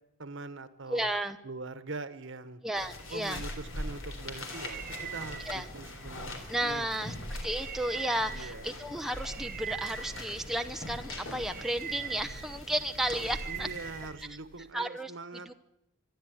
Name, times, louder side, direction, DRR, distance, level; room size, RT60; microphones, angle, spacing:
voice 1, 0.2-1.1 1.4-2.6 3.1-4.8 5.1-7.1 8.3-8.7 13.5-15.5, right 3 dB, 60° right, 13 dB, 1.3 m, -43 dB
voice 2, 0.9-1.4 2.6-3.4 5.4-5.7 6.5-13.7 14.3-14.4 14.7-15.5, right 1 dB, ahead, 5 dB, 0.7 m, -33 dB
sound 1, 2.7-14.1, left 1 dB, 65° left, 3.8 m, -42 dB
sound 2, 4.1-14.7, right 9 dB, 45° right, 0.8 m, -44 dB
25.5 x 11.5 x 9.4 m, 0.83 s
head